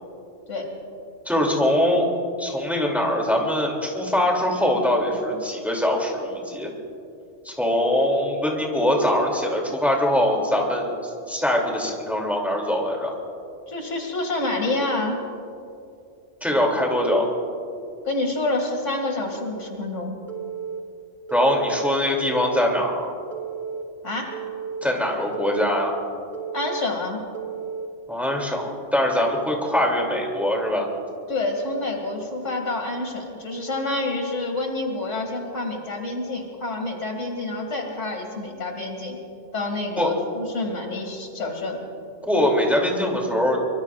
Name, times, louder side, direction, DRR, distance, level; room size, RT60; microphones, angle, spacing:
voice 1, 1.3-2.1 2.4-6.7 7.4-13.1 16.4-17.3 21.3-23.1 24.8-25.9 28.1-30.9 40.0-40.1 42.2-43.6, left 1 dB, ahead, -1 dB, 2.6 m, -22 dB
voice 2, 13.7-15.2 18.0-20.1 24.0-24.3 26.5-27.2 31.3-39.2 39.5-41.8, left 2 dB, 90° left, 2 dB, 2.6 m, -28 dB
Telephone, 20.3-20.8 21.3-21.8 22.3-22.8 23.3-23.8 24.3-24.8 25.3-25.8 26.3-26.8 27.3-27.9, right 7 dB, 40° right, 1.5 m, -33 dB
24.0 x 23.5 x 2.4 m, 2.5 s
omnidirectional pair, 1.2 m